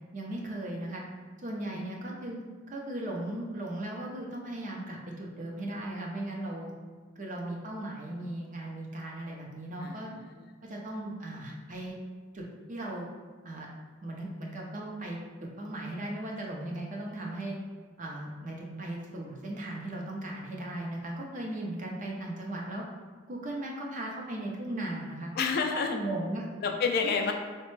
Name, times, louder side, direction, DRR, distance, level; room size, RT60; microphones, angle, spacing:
voice 1, 0.1-1.0 1.4-2.4 2.7-6.7 7.2-10.1 10.6-12.0 12.3-13.1 13.4-13.7 14.0-17.6 18.0-22.8 23.3-25.3 25.7-26.5 27.0-27.1, right 1 dB, 40° right, -1 dB, 0.6 m, -37 dB
voice 2, 25.4-26.0 26.6-27.3, left 5 dB, 50° left, 3 dB, 0.3 m, -28 dB
4.1 x 2.1 x 3.1 m, 1.5 s
head